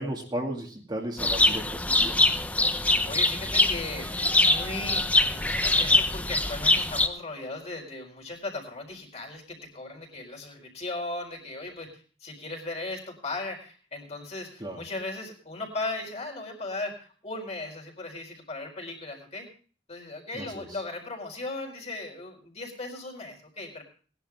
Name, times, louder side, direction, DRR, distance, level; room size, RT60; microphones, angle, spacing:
voice 1, 0.0-2.3 14.6-14.8 20.3-20.8, right 1 dB, 25° right, 0 dB, 2.2 m, -35 dB
sound 1, 1.2-7.1, left 2 dB, 10° left, 0.7 m, -23 dB
voice 2, 3.1-19.5 19.9-23.8, left 2 dB, 35° left, 2 dB, 4.5 m, -37 dB
19.5 x 11.0 x 3.5 m, 0.40 s
head